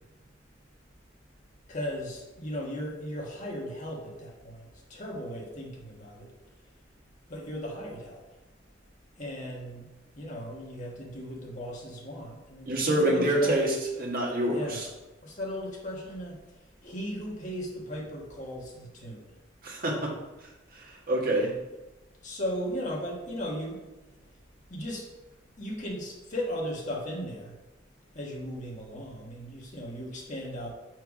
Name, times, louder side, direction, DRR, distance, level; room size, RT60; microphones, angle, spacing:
voice 1, 1.7-6.3 7.3-8.2 9.2-9.9 10.1-13.5 14.5-14.8 15.2-16.4 16.8-19.2 22.2-23.8 24.7-25.1 25.6-27.5 28.1-30.7, equal, 40° left, -1 dB, 1.4 m, -36 dB
voice 2, 12.7-14.9 19.6-20.1 21.1-21.5, right 1 dB, 50° right, -2 dB, 1.5 m, -26 dB
6.7 x 4.5 x 4.8 m, 1.0 s
head